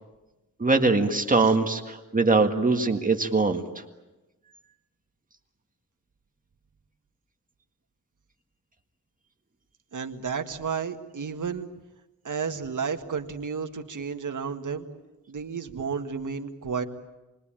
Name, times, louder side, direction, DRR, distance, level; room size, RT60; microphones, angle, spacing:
voice 1, 0.6-3.8, right 3 dB, 25° right, 4 dB, 1.8 m, -22 dB
voice 2, 9.9-11.7 12.2-14.9 15.3-16.8, right 6 dB, 65° right, 5 dB, 1.8 m, -32 dB
28.0 x 22.0 x 9.0 m, 1.1 s
wide cardioid pair, 165°, 33 cm